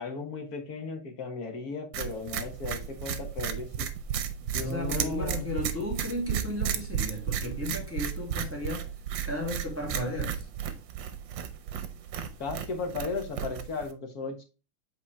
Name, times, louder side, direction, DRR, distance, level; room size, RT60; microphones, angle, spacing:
voice 1, 0.0-3.9 4.5-5.5 12.4-14.4, left 4 dB, 50° left, 1.6 m, -36 dB
sound 1, 1.9-13.9, right 9 dB, 65° right, 1.3 m, -34 dB
voice 2, 4.6-8.9 9.2-10.5, left 1 dB, 5° right, 2.3 m, -34 dB
8.1 x 4.2 x 3.3 m
omnidirectional pair, 2.4 m